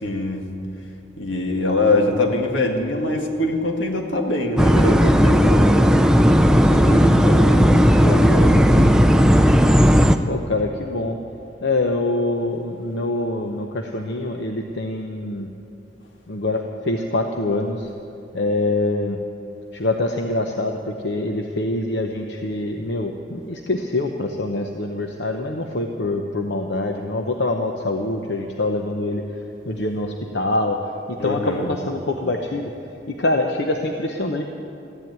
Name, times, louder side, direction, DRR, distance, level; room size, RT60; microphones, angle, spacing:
voice 1, 0.0-0.5 1.2-6.1 6.5-9.0 31.2-31.7, left 1 dB, 85° left, 2 dB, 1.9 m, -23 dB
sound 1, 4.6-10.2, equal, 5° right, 0.4 m, -14 dB
voice 2, 10.3-11.2 11.6-15.5 16.3-17.9 18.3-19.2 19.7-29.2 29.7-30.8 31.1-32.7 33.1-34.4, left 2 dB, 70° left, 3 dB, 0.9 m, -25 dB
14.5 x 10.5 x 9.4 m, 2.8 s
head